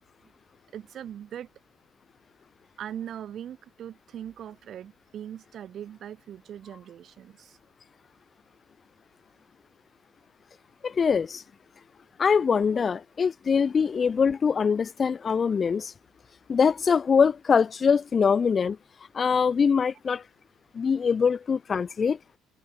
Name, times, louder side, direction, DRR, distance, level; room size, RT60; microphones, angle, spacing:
voice 1, 0.7-1.5 2.8-7.6, right 10 dB, 45° right, 6.8 m, -40 dB
voice 2, 10.8-11.4 12.2-15.9 16.5-18.8 19.1-20.2 20.7-22.2, left 6 dB, 30° left, 0.6 m, -23 dB
cardioid pair, 145°, 0 cm